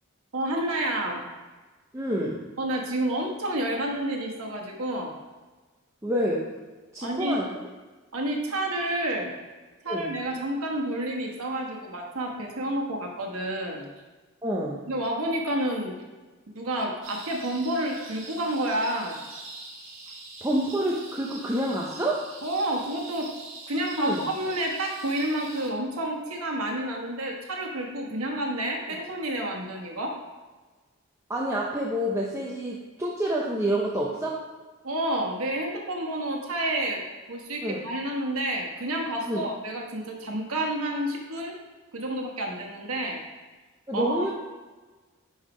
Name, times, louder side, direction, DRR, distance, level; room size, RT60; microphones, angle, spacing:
voice 1, 0.3-1.3 2.6-5.1 7.0-7.4 8.1-9.4 9.8-13.9 14.9-16.0 16.5-19.2 22.4-23.3 23.7-30.1 34.8-41.5 41.9-43.2 43.9-44.3, right 1 dB, 85° right, 0 dB, 1.2 m, -29 dB
voice 2, 1.9-2.4 6.0-6.5 6.9-7.6 9.9-10.1 14.4-14.9 20.4-22.3 24.0-24.2 31.3-34.4 37.6-37.8 39.3-39.4 43.9-44.3, right 1 dB, 15° right, -4 dB, 0.6 m, -28 dB
sound 1, 17.0-25.7, right 2 dB, 65° right, 1.6 m, -44 dB
5.6 x 5.5 x 4.9 m, 1.3 s
head